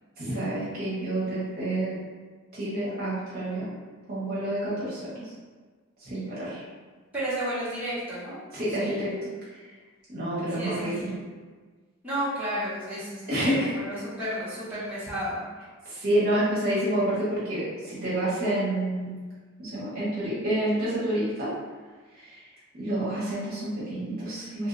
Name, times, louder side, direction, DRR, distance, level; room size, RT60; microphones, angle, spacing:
voice 1, 0.2-2.0 2.5-3.7 4.1-5.3 6.0-6.6 8.5-9.1 10.1-11.1 13.3-13.7 15.8-19.1 19.6-21.5 22.2-22.4 22.8-24.7, right 1 dB, 45° right, -10 dB, 1.1 m, -28 dB
voice 2, 7.1-8.4 8.8-9.0 10.5-11.1 12.0-15.4, right 1 dB, 10° right, -14 dB, 1.4 m, -32 dB
3.0 x 2.7 x 2.5 m, 1.4 s
head